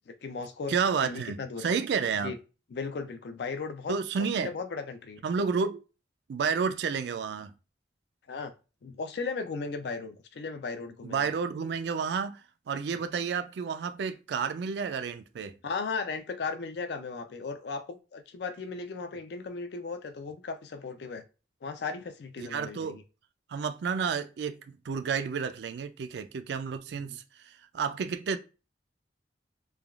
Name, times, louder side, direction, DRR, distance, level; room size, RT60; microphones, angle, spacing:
voice 1, 0.1-1.7 2.2-2.4 2.7-5.2 8.3-8.5 8.8-11.3 15.6-21.2 21.6-23.0 27.1-27.2, left 4 dB, 65° left, 0.4 m, -36 dB
voice 2, 0.7-2.3 3.9-4.5 5.2-5.8 6.3-7.5 11.0-12.4 12.7-15.5 22.4-23.0 23.5-24.6 24.9-28.4, right 6 dB, 70° right, 0.3 m, -30 dB
3.2 x 2.3 x 2.3 m
head